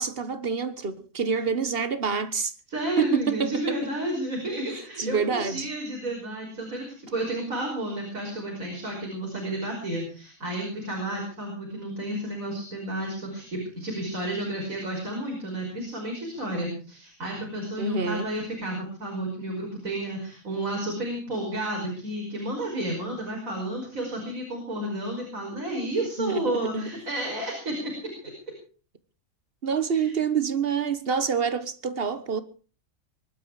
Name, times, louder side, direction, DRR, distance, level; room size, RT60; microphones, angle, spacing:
voice 1, 0.0-2.5 3.0-3.8 5.0-5.7 17.8-18.3 26.2-26.9 29.6-32.4, right 6 dB, 45° right, 1.5 m, -27 dB
voice 2, 2.7-27.9 29.9-30.1, right 1 dB, 85° right, 5.9 m, -31 dB
23.5 x 11.5 x 4.9 m
omnidirectional pair, 1.4 m